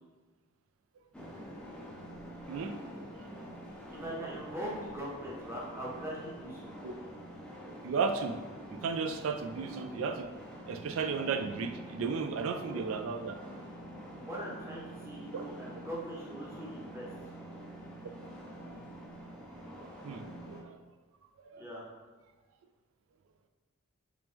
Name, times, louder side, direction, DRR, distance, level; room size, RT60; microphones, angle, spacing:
sound 1, 1.1-20.6, right 1 dB, 5° left, 0.3 m, -47 dB
voice 1, 2.5-3.5 3.9-4.0 6.8-6.9 7.8-8.4 8.7-10.3 10.7-13.4 15.3-15.4 15.7-15.8 18.6-18.7 19.7-20.8 21.4-21.6, right 5 dB, 70° right, 7 dB, 0.3 m, -35 dB
voice 2, 3.7-6.7 12.7-12.8 14.1-17.1 21.6-21.8, equal, 10° right, -5 dB, 0.8 m, -41 dB
3.0 x 3.0 x 3.5 m, 1.3 s
head